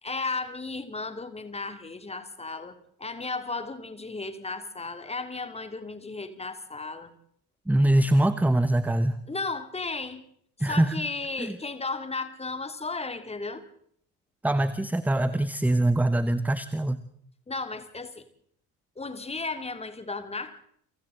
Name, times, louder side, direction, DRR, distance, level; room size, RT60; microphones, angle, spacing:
voice 1, 0.0-7.1 9.3-10.2 10.7-13.6 17.5-18.2 19.0-20.6, left 3 dB, 15° left, 10 dB, 2.5 m, -34 dB
voice 2, 7.7-9.2 10.6-11.0 11.4-11.6 14.4-17.0, right 1 dB, 5° right, 15 dB, 1.0 m, -23 dB
30.0 x 24.0 x 3.7 m, 0.66 s
figure-of-eight pair, 55°, 42 cm